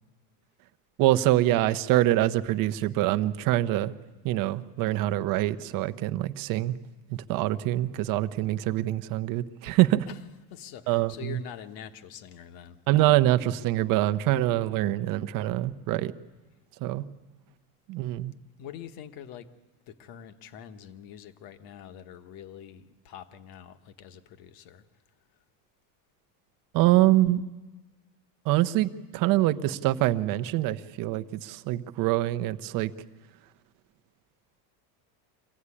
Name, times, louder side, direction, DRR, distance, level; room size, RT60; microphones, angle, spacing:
voice 1, 1.0-3.9 4.2-6.8 7.1-10.1 10.9-11.4 12.9-16.1 16.8-17.0 17.9-18.3 26.7-27.4 28.4-32.9, right 15 dB, 40° right, 11 dB, 0.8 m, -25 dB
voice 2, 10.5-12.8 18.6-19.5 19.9-24.8, left 9 dB, 45° left, 9 dB, 1.2 m, -45 dB
24.5 x 16.0 x 9.8 m, 1.2 s
cardioid pair, 165°, 48 cm